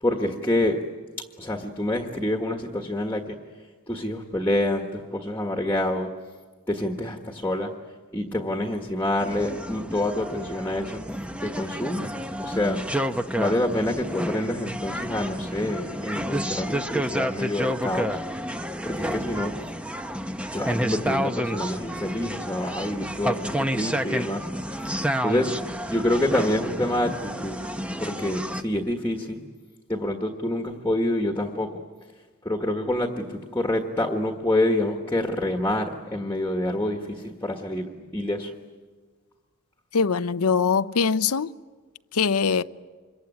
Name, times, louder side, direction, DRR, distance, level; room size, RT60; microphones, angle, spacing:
voice 1, 0.0-0.8 1.4-3.4 3.9-6.1 6.7-7.7 8.1-11.0 11.4-12.1 12.4-12.8 13.4-18.2 18.8-19.5 20.5-24.5 25.2-25.5 25.9-27.6 28.0-29.4 29.9-31.7 32.4-38.5, left 1 dB, 10° left, 1.5 m, -27 dB
sound 1, 9.2-28.6, equal, 5° right, 0.8 m, -30 dB
voice 2, 39.9-41.5 42.1-42.6, left 5 dB, 85° left, 0.7 m, -22 dB
27.0 x 23.0 x 9.5 m
head